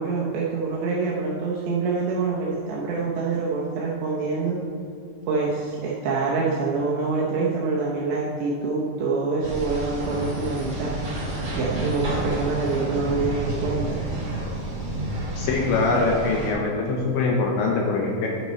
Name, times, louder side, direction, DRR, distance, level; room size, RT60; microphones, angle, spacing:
voice 1, 0.0-4.6 5.3-10.9 11.5-14.0, right 4 dB, 80° right, -4 dB, 2.5 m, -26 dB
sound 1, 9.4-16.5, right 1 dB, 60° right, 0.9 m, -30 dB
voice 2, 15.4-18.3, left 3 dB, 80° left, -1 dB, 2.8 m, -23 dB
11.0 x 5.9 x 4.4 m, 2.3 s
omnidirectional pair, 5.9 m